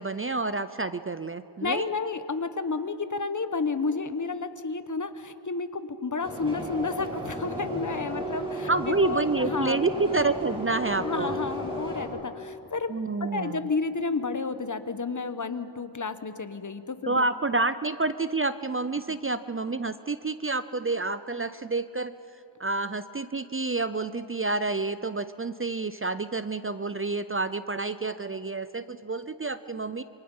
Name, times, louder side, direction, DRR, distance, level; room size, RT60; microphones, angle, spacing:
voice 1, 0.0-1.9 8.7-11.4 12.9-13.7 17.1-22.1 22.6-30.0, right 3 dB, 30° right, 13 dB, 0.5 m, -29 dB
voice 2, 1.6-9.9 11.0-12.9 13.3-17.2, left 4 dB, 40° left, 10 dB, 1.1 m, -31 dB
sound 1, 6.2-12.0, equal, 10° right, 5.6 m, -33 dB
27.0 x 25.0 x 5.6 m, 2.8 s
wide cardioid pair, 100°, 47 cm